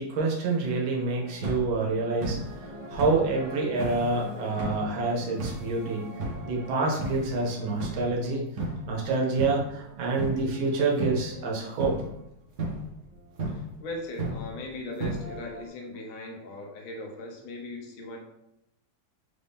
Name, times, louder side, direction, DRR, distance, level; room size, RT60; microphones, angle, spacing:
voice 1, 0.0-2.4 2.9-6.1 6.4-8.4 8.9-12.0, right 3 dB, 80° right, -2 dB, 1.6 m, -27 dB
sound 1, 1.1-11.4 11.7-12.2 12.6-12.9 13.4-13.7 14.2-14.5 15.0-15.7, right 2 dB, 50° right, 0.9 m, -35 dB
voice 2, 13.5-18.2, left 2 dB, 75° left, 1 dB, 1.5 m, -39 dB
4.1 x 2.7 x 3.4 m, 0.82 s
omnidirectional pair, 2.1 m